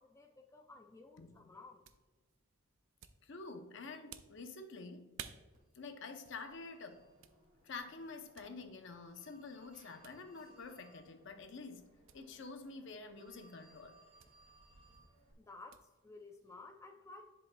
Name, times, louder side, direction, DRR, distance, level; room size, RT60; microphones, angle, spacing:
voice 1, 0.0-1.9 15.4-17.2, left 3 dB, 15° left, 0.4 m, -55 dB
sound 1, 1.0-16.7, right 9 dB, 65° right, 0.4 m, -59 dB
voice 2, 3.2-5.1 5.7-7.0 7.6-13.9, left 4 dB, 55° left, 0.7 m, -48 dB
Telephone, 5.5-15.3, right 1 dB, 35° right, 1.9 m, -66 dB
10.5 x 5.2 x 2.2 m
head